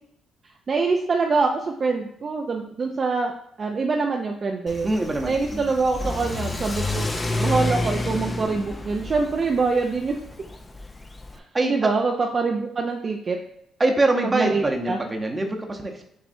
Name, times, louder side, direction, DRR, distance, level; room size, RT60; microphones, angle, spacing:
voice 1, 0.7-4.9 5.2-7.1 7.4-10.2 11.3-11.4 11.7-13.4 14.2-15.0, right 4 dB, 40° right, 2 dB, 0.5 m, -24 dB
Car / Accelerating revving vroom, 4.7-11.4, left 2 dB, 20° left, 0.5 m, -30 dB
voice 2, 4.8-5.7 11.5-12.0 13.8-16.1, right 2 dB, 25° right, 3 dB, 0.8 m, -24 dB
6.1 x 3.1 x 2.6 m, 0.77 s
cardioid pair, 90°, 0 cm